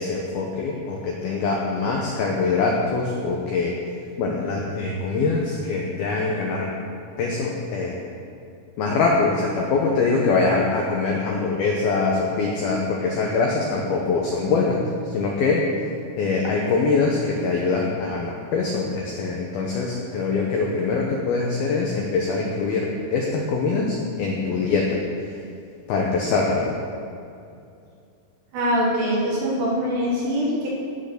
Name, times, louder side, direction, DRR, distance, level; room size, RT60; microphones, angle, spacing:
voice 1, 0.0-3.7 4.2-6.7 7.2-8.1 8.8-14.8 15.0-15.6 16.2-24.9 25.2-25.4 25.9-26.7, left 4 dB, 75° left, -1 dB, 2.3 m, -23 dB
voice 2, 28.5-30.7, equal, 60° right, -7 dB, 5.1 m, -23 dB
16.5 x 6.6 x 6.8 m, 2.5 s
omnidirectional pair, 5.9 m